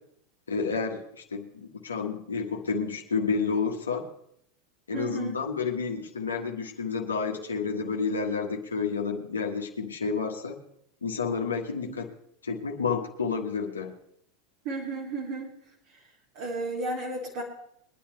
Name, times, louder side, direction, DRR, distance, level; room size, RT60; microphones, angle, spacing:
voice 1, 0.5-4.1 4.9-10.6 11.0-12.1 12.4-13.9, left 5 dB, 80° left, 2 dB, 1.5 m, -30 dB
voice 2, 4.9-5.4 11.8-12.1 14.6-15.5 16.3-17.4, right 2 dB, 55° right, -3 dB, 2.7 m, -33 dB
23.0 x 10.5 x 3.2 m, 0.72 s
figure-of-eight pair, 85°, 0 cm